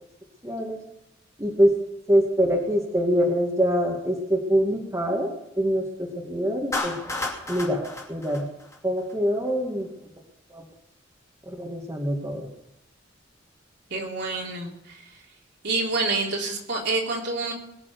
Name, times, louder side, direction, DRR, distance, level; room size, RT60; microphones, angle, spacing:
voice 1, 0.4-0.8 1.4-1.8 2.1-5.3 5.6-7.0 7.5-7.8 8.1-8.5 8.8-9.9 10.5-10.6 11.5-12.5, equal, 15° right, 0 dB, 2.2 m, -24 dB
Clapping, 6.7-9.1, left 2 dB, 15° left, 2.7 m, -32 dB
voice 2, 13.9-15.2 15.6-17.5, right 3 dB, 60° right, -1 dB, 3.7 m, -28 dB
22.0 x 7.3 x 6.9 m, 0.82 s
head